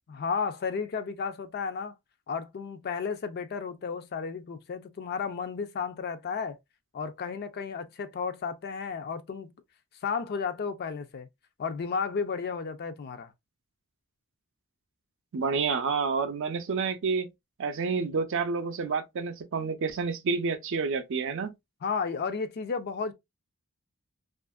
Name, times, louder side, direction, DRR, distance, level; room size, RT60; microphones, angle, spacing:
voice 1, 0.1-1.9 2.3-6.6 6.9-9.5 10.0-11.3 11.6-13.3 21.8-23.1, left 5 dB, 45° left, 0.4 m, -33 dB
voice 2, 15.3-17.3 17.6-21.5, right 4 dB, 60° right, 0.5 m, -29 dB
2.7 x 2.5 x 2.2 m
head